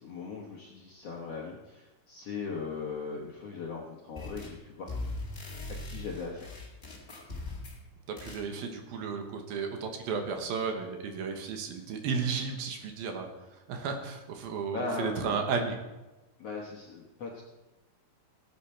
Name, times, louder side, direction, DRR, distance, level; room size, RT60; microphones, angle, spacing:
voice 1, 0.0-4.9 5.9-6.6 14.7-15.4 16.4-17.4, left 4 dB, 65° left, -1 dB, 1.6 m, -38 dB
sound 1, 4.1-4.6 4.9-7.8 8.2-8.4, left 2 dB, 30° left, 1.0 m, -40 dB
voice 2, 8.1-13.3 13.7-15.8, right 5 dB, 75° right, 4 dB, 3.0 m, -33 dB
17.5 x 8.3 x 4.3 m, 1.1 s
omnidirectional pair, 4.5 m